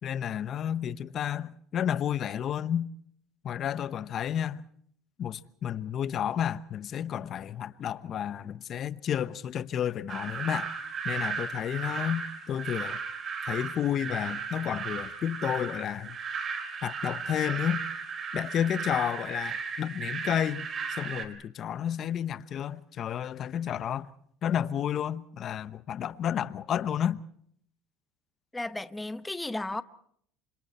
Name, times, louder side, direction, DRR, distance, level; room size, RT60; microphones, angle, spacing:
voice 1, 0.0-2.9 3.4-4.6 5.2-10.7 11.0-13.0 13.4-16.2 16.8-17.8 18.3-24.1 24.4-27.2, left 9 dB, 45° left, 1.0 m, -31 dB
sound 1, 10.1-21.2, right 5 dB, 40° right, 3.7 m, -35 dB
voice 2, 28.5-29.8, left 2 dB, 10° left, 1.0 m, -34 dB
28.5 x 26.0 x 4.4 m
supercardioid pair, 105°, 0 cm